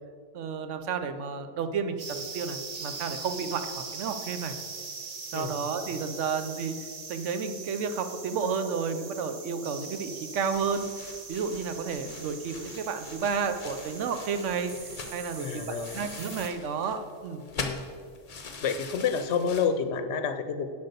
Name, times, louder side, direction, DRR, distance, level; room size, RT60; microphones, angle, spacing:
voice 1, 0.3-4.5 5.3-6.8 7.1-10.8 11.3-14.7 15.1-17.5, right 5 dB, 75° right, 9 dB, 1.0 m, -31 dB
sound 1, 2.0-16.5, right 4 dB, 40° right, 0.7 m, -41 dB
sound 2, 10.5-19.7, left 4 dB, 40° left, 0.7 m, -43 dB
voice 2, 15.4-16.0 17.5-17.8 18.6-20.7, left 6 dB, 65° left, 10 dB, 0.8 m, -29 dB
7.8 x 5.4 x 6.8 m, 2.1 s
omnidirectional pair, 1.3 m